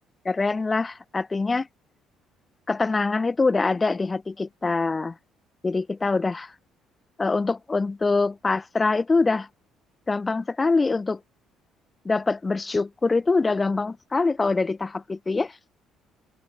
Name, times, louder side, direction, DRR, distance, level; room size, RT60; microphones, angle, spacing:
voice 1, 0.2-1.7 2.7-5.1 5.6-6.5 7.2-9.5 10.1-11.2 12.0-15.6, left 3 dB, 25° left, 1.2 m, -24 dB
figure-of-eight pair, 50°, 0 cm